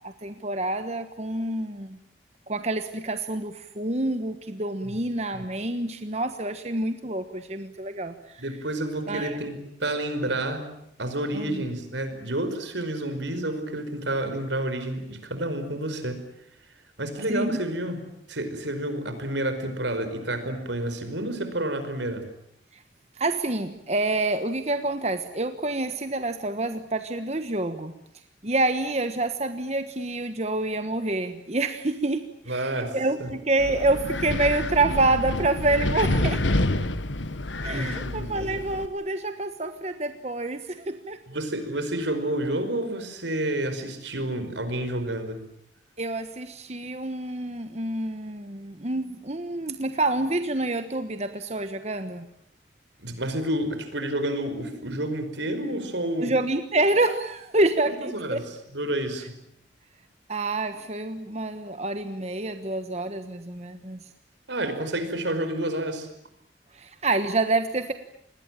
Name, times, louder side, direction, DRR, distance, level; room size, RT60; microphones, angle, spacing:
voice 1, 0.0-2.0 2.5-8.4 9.1-9.4 11.3-11.6 17.3-17.6 22.7-22.8 23.1-27.9 28.4-36.6 37.6-41.2 46.0-52.2 56.2-58.4 60.3-64.0 66.7-67.9, right 2 dB, 35° right, 8 dB, 1.3 m, -27 dB
voice 2, 8.4-10.6 11.0-16.2 17.0-18.0 18.3-22.2 32.5-33.3 37.6-38.5 41.3-45.4 53.0-56.3 58.0-59.3 64.5-66.1, right 1 dB, 80° right, 9 dB, 5.1 m, -29 dB
Wind, 33.6-38.9, left 2 dB, 90° left, 1.5 m, -28 dB
28.0 x 21.0 x 9.0 m, 0.75 s
head